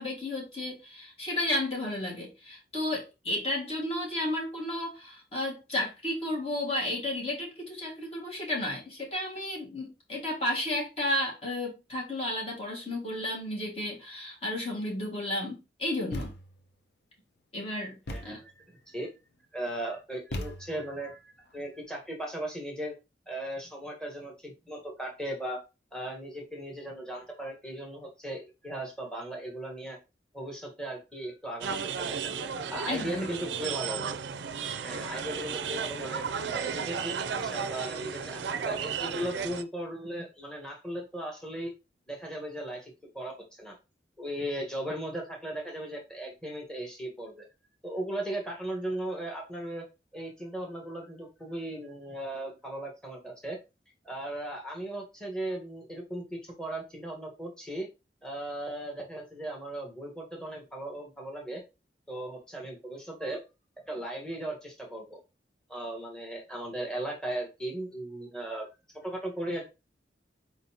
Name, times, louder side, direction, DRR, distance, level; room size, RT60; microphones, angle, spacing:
voice 1, 0.0-16.3 17.5-18.4 32.9-33.3, left 1 dB, 35° left, 1.8 m, -33 dB
Thump thud, 16.1-16.7 18.1-18.5 20.3-21.0, left 1 dB, 70° left, 0.7 m, -38 dB
voice 2, 18.1-19.1 19.5-22.9 23.3-25.6 25.9-30.0 30.3-32.3 32.7-34.2 34.8-36.2 36.5-41.7 42.1-43.7 44.2-47.5 47.8-49.8 50.1-53.6 54.0-57.9 58.2-61.6 62.1-63.4 63.9-65.2 65.7-68.7 69.0-69.7, right 1 dB, 5° left, 1.3 m, -37 dB
sound 1, 31.6-39.6, right 6 dB, 80° right, 0.4 m, -34 dB
4.5 x 4.0 x 2.8 m
head